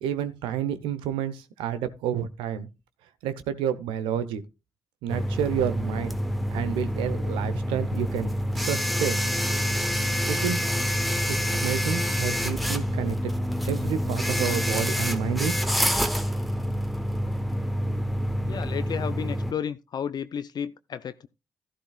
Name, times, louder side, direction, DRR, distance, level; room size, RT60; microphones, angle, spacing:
voice 1, 0.0-2.7 3.2-4.4 5.0-6.2 6.5-9.2 10.3-10.6 11.3-13.3 13.6-15.6, right 9 dB, 80° right, 0.9 m, -30 dB
sound 1, 5.1-19.5, equal, ahead, 1.1 m, -27 dB
voice 2, 18.4-21.3, left 8 dB, 55° left, 0.5 m, -32 dB
12.5 x 11.5 x 2.4 m
hypercardioid pair, 45°, 9 cm